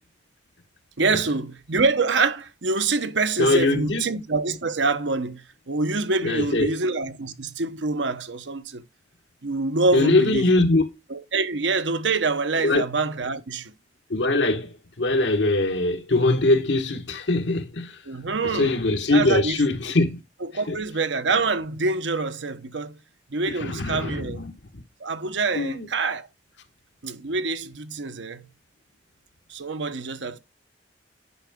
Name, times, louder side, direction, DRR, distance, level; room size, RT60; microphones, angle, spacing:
voice 1, 1.0-8.8 9.4-10.5 11.1-13.7 18.1-18.8 19.1-19.6 20.5-23.0 23.3-24.4 25.0-26.3 27.0-28.5 29.5-30.4, right 3 dB, 90° right, 0.9 m, -26 dB
voice 2, 3.4-4.0 6.2-6.8 9.9-10.8 12.6-12.8 14.1-18.0 18.4-20.2 20.7-20.8 23.6-24.8 25.5-25.9, left 2 dB, 80° left, 1.3 m, -22 dB
10.0 x 4.6 x 3.5 m
head